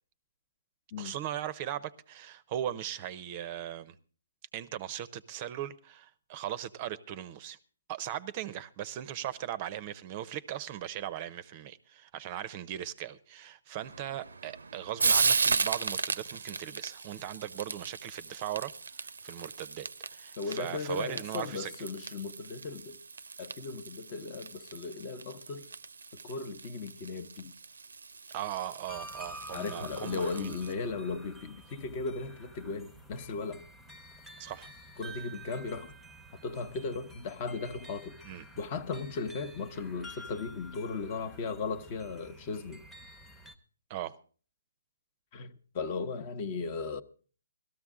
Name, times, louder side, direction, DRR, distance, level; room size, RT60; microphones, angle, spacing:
voice 1, 1.0-3.9 4.5-7.6 7.9-21.7 28.3-30.6 34.4-34.7 38.2-38.5 43.9-44.1, right 11 dB, 30° right, 0.6 m, -38 dB
Frying (food), 13.8-30.7, right 4 dB, 85° right, 0.6 m, -36 dB
voice 2, 20.4-23.0 23.4-25.7 26.2-27.5 29.5-33.6 35.0-35.9 36.4-38.2 38.6-42.8 45.3-47.0, left 4 dB, 30° left, 0.9 m, -37 dB
sound 1, 28.9-43.5, right 1 dB, 5° left, 0.9 m, -50 dB
17.0 x 13.5 x 3.6 m
hypercardioid pair, 155°, 0 cm